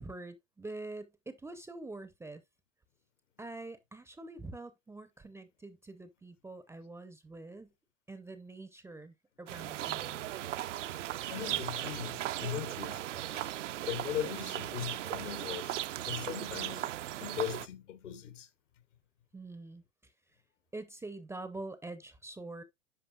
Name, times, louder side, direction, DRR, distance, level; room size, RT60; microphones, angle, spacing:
voice 1, 0.0-2.4 3.4-7.7 8.1-10.2 19.3-20.1 20.7-22.6, right 2 dB, 5° right, 0.5 m, -45 dB
sound 1, 9.5-17.7, right 13 dB, 70° right, 0.6 m, -37 dB
voice 2, 11.3-13.0 13.3-13.6 13.9-16.9 17.2-18.5, left 10 dB, 70° left, 1.4 m, -39 dB
10.5 x 5.1 x 2.3 m
figure-of-eight pair, 95°, 38 cm